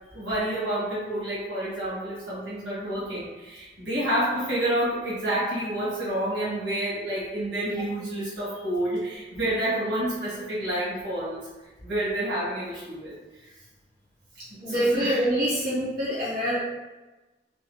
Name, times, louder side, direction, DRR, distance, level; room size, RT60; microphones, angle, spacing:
voice 1, 0.1-11.5 11.8-13.1 13.4-13.5 14.6-15.2, right 1 dB, 85° right, -10 dB, 1.5 m, -29 dB
voice 2, 14.6-16.6, equal, 55° right, -12 dB, 1.3 m, -25 dB
3.4 x 2.0 x 3.1 m, 1.1 s
head